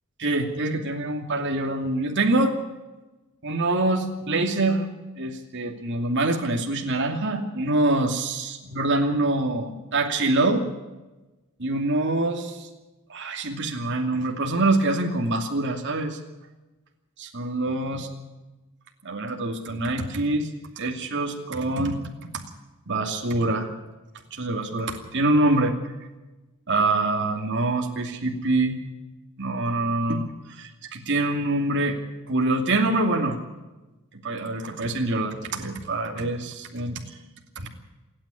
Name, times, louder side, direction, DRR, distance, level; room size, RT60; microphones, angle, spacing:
voice 1, 0.2-2.6 3.4-4.9 5.2-10.6 11.6-12.7 13.1-16.2 17.2-18.1 19.0-20.5 20.8-22.0 22.9-23.7 24.3-25.7 26.7-28.8 29.4-32.0 32.3-33.4 34.2-37.0 37.6-37.7, right 2 dB, 55° right, 2 dB, 2.6 m, -25 dB
27.5 x 9.9 x 9.9 m, 1.1 s
head